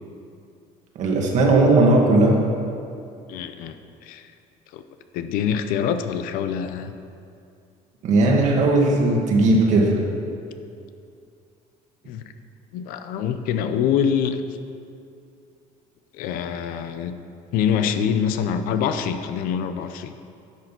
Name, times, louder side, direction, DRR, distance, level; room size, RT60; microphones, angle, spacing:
voice 1, 1.0-2.4 8.0-10.0, right 2 dB, 55° right, -1 dB, 1.9 m, -17 dB
voice 2, 3.3-3.8 4.0-4.3 4.7-4.8 5.1-6.9 12.1-12.2 12.7-14.4 16.1-17.1 17.5-20.1, left 8 dB, 80° left, 9 dB, 0.7 m, -25 dB
10.5 x 6.7 x 5.9 m, 2.5 s
cardioid pair, 145°, 14 cm